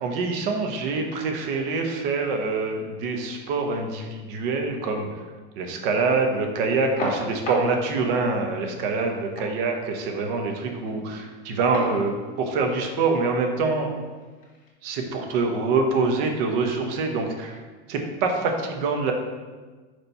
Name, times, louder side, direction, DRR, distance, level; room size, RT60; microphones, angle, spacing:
voice 1, 0.0-5.1 5.6-13.9 14.8-17.6 17.9-19.1, right 4 dB, 65° right, 3 dB, 1.2 m, -25 dB
sound 1, 6.7-14.7, left 1 dB, 25° left, 2.1 m, -38 dB
4.9 x 4.6 x 5.5 m, 1.4 s
supercardioid pair, 130°, 31 cm